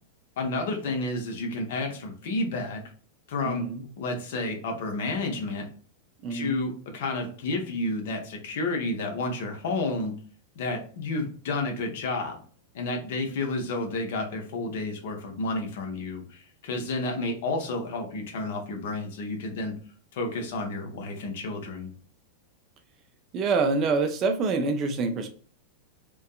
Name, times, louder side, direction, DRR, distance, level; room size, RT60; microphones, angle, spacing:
voice 1, 0.4-2.8 3.3-3.6 4.0-5.7 6.3-10.1 10.6-12.4 12.7-19.7 20.1-21.9, left 2 dB, 55° left, 3 dB, 0.6 m, -31 dB
voice 2, 3.5-3.8 6.2-6.6 23.3-25.3, right 4 dB, 35° right, 7 dB, 0.4 m, -26 dB
2.5 x 2.2 x 2.3 m, 0.43 s
figure-of-eight pair, 90°, 0 cm